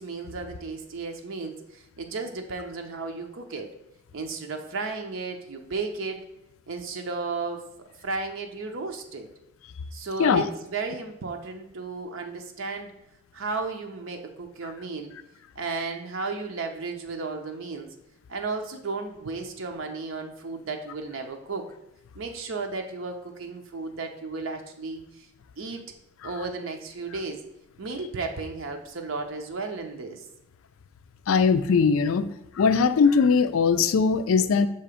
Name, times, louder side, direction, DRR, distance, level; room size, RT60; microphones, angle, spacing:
voice 1, 0.0-3.7 4.1-6.2 6.7-7.6 8.0-9.3 9.9-12.9 13.3-15.2 15.6-17.9 18.3-21.7 22.2-25.3 25.6-25.8 26.2-27.4 27.8-30.3, right 3 dB, 65° right, 4 dB, 0.6 m, -34 dB
voice 2, 31.3-32.3 32.6-34.7, left 5 dB, 75° left, 12 dB, 0.4 m, -20 dB
6.8 x 2.8 x 4.9 m, 0.85 s
head